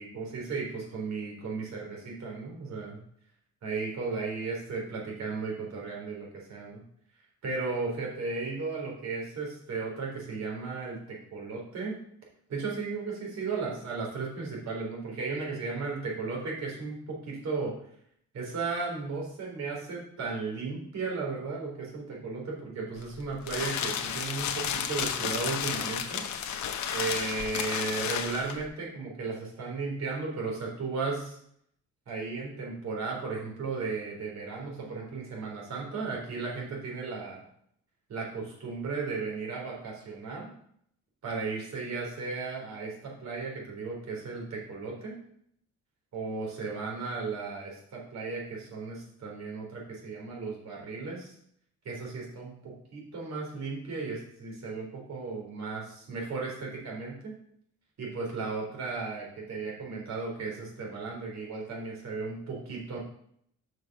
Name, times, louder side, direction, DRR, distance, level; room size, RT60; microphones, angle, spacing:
voice 1, 0.0-3.0 3.6-6.8 7.4-12.0 12.5-17.7 18.3-26.2 26.9-31.4 32.1-37.4 38.1-40.5 41.2-45.2 46.1-51.3 51.9-57.3 58.0-63.0, right 4 dB, 60° right, -2 dB, 3.5 m, -35 dB
sound 1, 23.0-28.7, left 8 dB, 70° left, 0.9 m, -32 dB
6.1 x 5.4 x 5.9 m, 0.67 s
cardioid pair, 90°, 30 cm